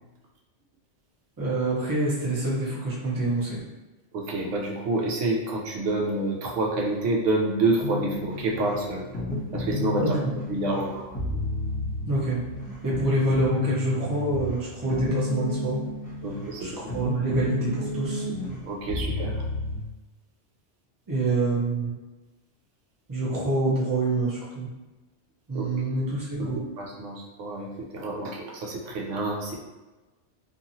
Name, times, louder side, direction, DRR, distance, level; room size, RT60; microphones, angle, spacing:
voice 1, 1.4-3.6 10.0-10.3 12.1-12.4 12.8-15.8 16.6-18.2 21.1-21.9 23.1-24.7 25.5-26.6, right 2 dB, 20° right, -7 dB, 0.7 m, -26 dB
voice 2, 4.1-9.0 9.5-10.1 10.5-11.1 16.2-16.7 17.0-17.1 18.7-19.3 25.5-25.7 26.4-29.5, right 2 dB, 85° right, -1 dB, 1.0 m, -28 dB
sound 1, 7.8-19.8, left 2 dB, 40° left, 1.0 m, -32 dB
2.7 x 2.6 x 2.6 m, 1.1 s
omnidirectional pair, 1.2 m